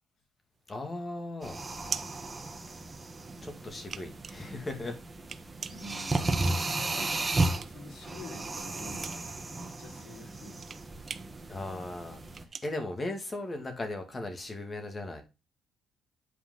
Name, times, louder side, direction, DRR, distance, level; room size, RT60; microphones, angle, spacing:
sound 1, 0.6-3.1 3.5-8.0 8.3-13.8, right 6 dB, 45° right, 0.6 m, -43 dB
voice 1, 0.7-1.6 3.4-5.0 11.5-15.2, left 2 dB, 25° left, 2.4 m, -37 dB
sound 2, 1.4-12.4, right 2 dB, 25° right, 1.6 m, -34 dB
voice 2, 5.6-10.6, left 1 dB, 70° left, 3.7 m, -47 dB
8.6 x 4.9 x 4.0 m
cardioid pair, 90°, 0 cm